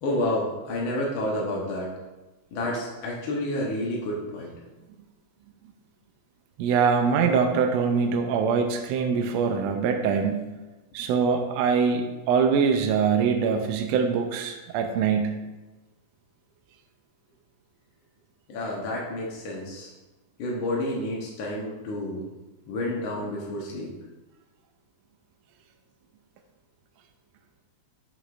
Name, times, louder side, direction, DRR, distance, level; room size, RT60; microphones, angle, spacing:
voice 1, 0.0-1.9 2.5-4.5 18.5-19.9 20.4-22.3 22.7-23.9, left 1 dB, 65° left, -4 dB, 1.3 m, -30 dB
voice 2, 6.6-10.5 10.9-15.3, right 6 dB, 80° right, 5 dB, 1.5 m, -23 dB
7.8 x 5.9 x 2.5 m, 1.1 s
omnidirectional pair, 3.4 m